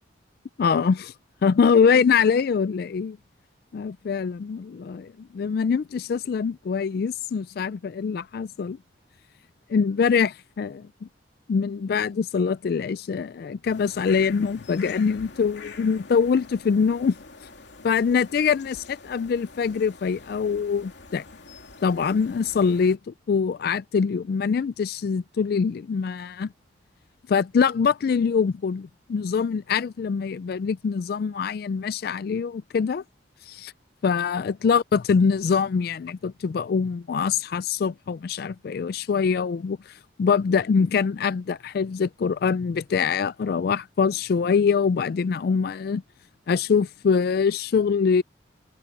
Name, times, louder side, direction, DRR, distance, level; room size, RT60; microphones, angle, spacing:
voice 1, 0.6-1.1 1.4-3.2 3.7-8.8 9.7-10.9 11.5-17.2 17.8-21.2 21.8-26.5 27.3-33.0 33.5-33.7 34.0-46.0 46.5-48.2, left 6 dB, 55° left, 0.3 m, -24 dB
sound 1, 13.6-23.0, left 4 dB, 70° left, 2.8 m, -46 dB
head